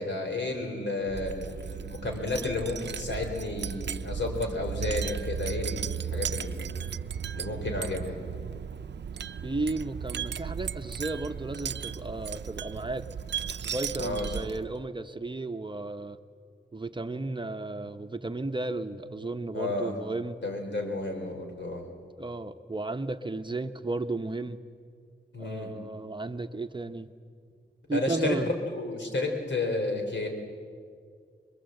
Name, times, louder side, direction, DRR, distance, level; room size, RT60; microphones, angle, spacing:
voice 1, 0.0-6.7 7.3-8.2 14.0-14.3 19.5-19.9 20.4-21.8 25.3-25.7 27.9-28.5 28.7-30.3, left 2 dB, 75° left, 3 dB, 3.9 m, -32 dB
Wind chime, 1.0-14.8, right 7 dB, 70° right, 0.6 m, -35 dB
voice 2, 9.4-13.0 13.6-16.2 16.7-20.4 22.2-24.6 25.4-27.1 27.9-28.5, right 2 dB, 25° right, 8 dB, 0.9 m, -34 dB
25.5 x 22.0 x 7.8 m, 2.1 s
wide cardioid pair, 75°, 19 cm